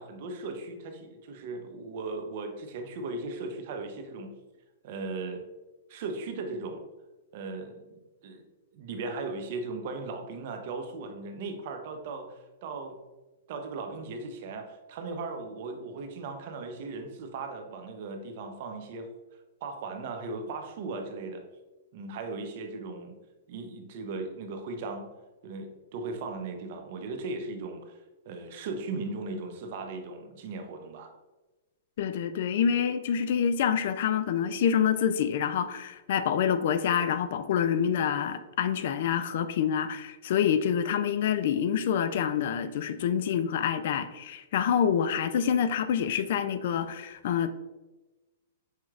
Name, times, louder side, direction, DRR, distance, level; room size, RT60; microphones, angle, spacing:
voice 1, 0.0-4.3 4.8-5.4 5.9-6.8 7.3-8.4 8.7-13.0 13.5-19.1 19.6-21.4 21.9-23.2 23.5-25.1 25.4-28.0 28.3-31.1, right 3 dB, 55° right, 5 dB, 0.7 m, -37 dB
voice 2, 32.0-47.6, left 8 dB, 60° left, 10 dB, 0.3 m, -27 dB
5.6 x 3.0 x 2.4 m, 1.1 s
hypercardioid pair, 130°, 0 cm